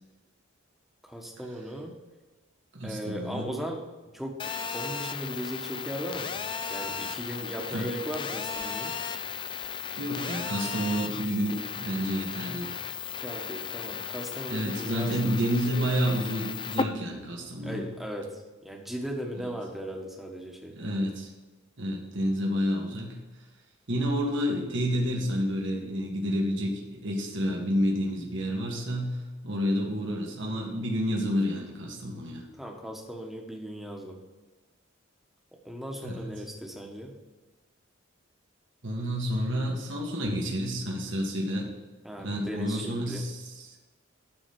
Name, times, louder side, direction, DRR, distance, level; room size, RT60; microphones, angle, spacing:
voice 1, 1.0-1.9 2.8-3.8 4.1-4.4 4.7-6.4 6.7-8.9 13.2-15.4 17.6-20.8 32.6-34.2 35.6-37.1 42.0-43.2, equal, ahead, 0 dB, 1.4 m, -37 dB
voice 2, 2.7-3.5 7.7-7.9 10.0-12.7 14.5-17.9 20.7-21.3 21.8-23.2 23.9-32.5 36.0-36.4 38.8-41.7 42.2-43.8, equal, 65° right, -1 dB, 1.8 m, -29 dB
Telephone, 4.4-16.8, left 6 dB, 25° left, 0.4 m, -35 dB
12.5 x 4.1 x 6.1 m, 1.2 s
head